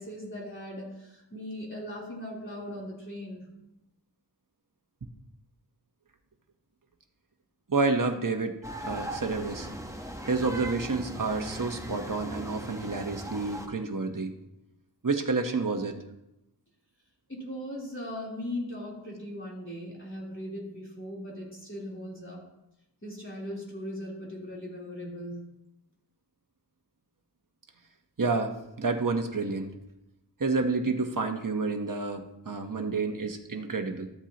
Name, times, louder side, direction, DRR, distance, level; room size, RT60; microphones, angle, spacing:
voice 1, 0.0-3.5 17.3-22.4 23.0-25.4, left 1 dB, 30° left, -5 dB, 3.7 m, -39 dB
voice 2, 7.7-9.7 10.3-14.3 15.0-15.9 28.2-29.7 30.4-34.1, right 3 dB, 50° right, 4 dB, 1.2 m, -29 dB
sound 1, 8.6-13.7, right 1 dB, 5° right, 1.2 m, -39 dB
13.5 x 8.0 x 3.0 m, 0.90 s
wide cardioid pair, 55°, 43 cm